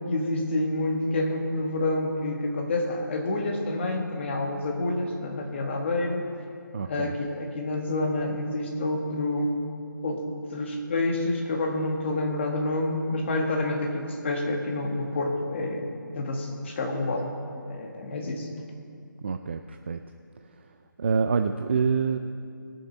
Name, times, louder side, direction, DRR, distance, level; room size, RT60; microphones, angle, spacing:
voice 1, 0.1-6.3 6.8-9.6 10.0-10.2 10.5-15.9 16.1-18.5, left 2 dB, 35° left, 2 dB, 1.5 m, -28 dB
voice 2, 6.7-7.1 19.2-20.0 21.0-22.2, right 5 dB, 30° right, 7 dB, 0.3 m, -26 dB
21.0 x 7.2 x 4.3 m, 2.4 s
figure-of-eight pair, 150°, 11 cm